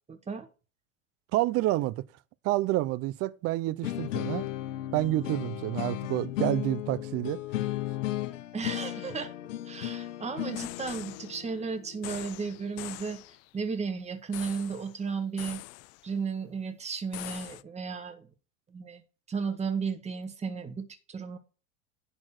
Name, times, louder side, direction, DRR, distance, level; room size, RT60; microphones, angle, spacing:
voice 1, 0.1-0.5 8.5-9.3 9.6-13.2 13.5-15.6 16.0-18.3 18.7-19.0 19.3-21.4, right 5 dB, 15° right, 1.7 m, -34 dB
voice 2, 1.3-2.0 2.4-4.5 4.9-7.4, right 16 dB, 40° right, 0.7 m, -28 dB
sound 1, 3.8-12.8, left 14 dB, 75° left, 1.3 m, -35 dB
sound 2, 10.5-11.5 12.0-13.5 14.3-15.0 15.4-16.1 17.1-17.6, left 21 dB, 40° left, 0.5 m, -43 dB
11.0 x 4.4 x 6.0 m
supercardioid pair, 125°, 38 cm